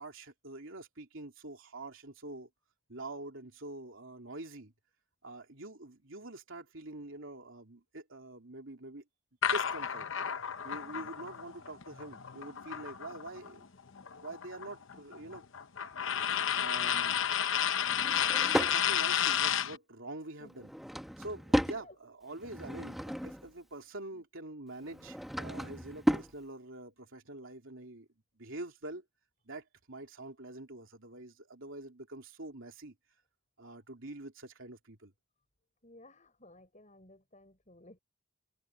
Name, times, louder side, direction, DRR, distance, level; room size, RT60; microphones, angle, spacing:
voice 1, 0.0-2.5 2.9-4.7 5.2-9.0 9.5-10.1 10.6-13.7 14.2-15.4 16.6-17.4 18.5-20.7 21.2-28.1 28.4-29.0 29.4-32.9 33.6-35.1, right 2 dB, 65° right, 3.1 m, -45 dB
sound 1, 9.4-13.5 13.8-19.8, left 9 dB, 65° left, 0.9 m, -32 dB
voice 2, 10.8-11.1 20.4-20.5 21.8-22.0 24.1-24.2 35.8-38.0, left 1 dB, 35° left, 5.7 m, -56 dB
Drawer open or close / Wood, 17.8-18.8 20.5-21.8 22.3-23.5 24.8-26.3, equal, ahead, 1.2 m, -34 dB
head